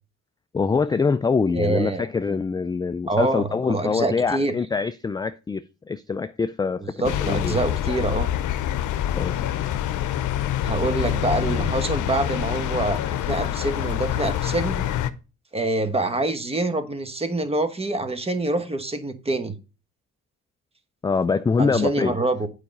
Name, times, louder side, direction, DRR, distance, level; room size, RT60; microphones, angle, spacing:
voice 1, 0.5-7.6 9.1-9.5 21.0-22.2, left 5 dB, 15° left, 0.3 m, -24 dB
voice 2, 1.5-2.1 3.1-4.5 6.8-8.3 10.6-14.8 15.5-19.5 21.6-22.5, right 2 dB, 20° right, 1.2 m, -25 dB
sound 1, 7.0-15.1, left 11 dB, 75° left, 0.7 m, -26 dB
8.5 x 4.9 x 5.3 m
cardioid pair, 90°, 30 cm